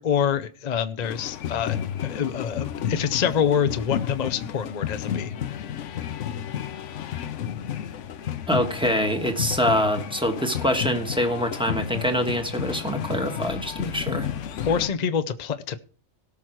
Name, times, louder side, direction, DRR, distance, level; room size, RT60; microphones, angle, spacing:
voice 1, 0.0-1.8 2.0-5.3 14.7-15.8, left 8 dB, 45° left, 11 dB, 0.6 m, -26 dB
sound 1, 1.0-14.9, left 9 dB, 85° left, 1.1 m, -32 dB
voice 2, 8.5-14.3, equal, 5° right, 5 dB, 1.4 m, -25 dB
18.0 x 6.1 x 4.6 m, 0.42 s
omnidirectional pair, 1.2 m